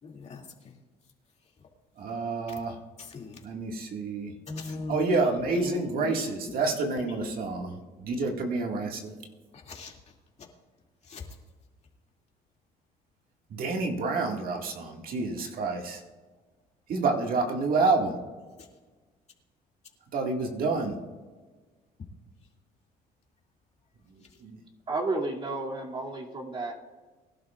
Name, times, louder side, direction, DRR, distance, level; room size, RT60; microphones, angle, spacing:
voice 1, 0.0-0.8 3.0-3.5 4.5-7.9 9.5-10.5 11.0-11.3 18.6-18.7 24.3-24.4, left 4 dB, 40° left, 0 dB, 2.6 m, -40 dB
voice 2, 2.0-2.7 3.4-4.3 4.9-7.7 8.0-9.1 13.5-16.0 16.9-18.2 20.1-21.0 24.4-24.6, right 3 dB, 60° right, 1 dB, 2.0 m, -28 dB
voice 3, 24.9-26.7, right 2 dB, 30° right, -2 dB, 2.6 m, -32 dB
22.5 x 12.0 x 2.5 m, 1.4 s
cardioid pair, 110°, 17 cm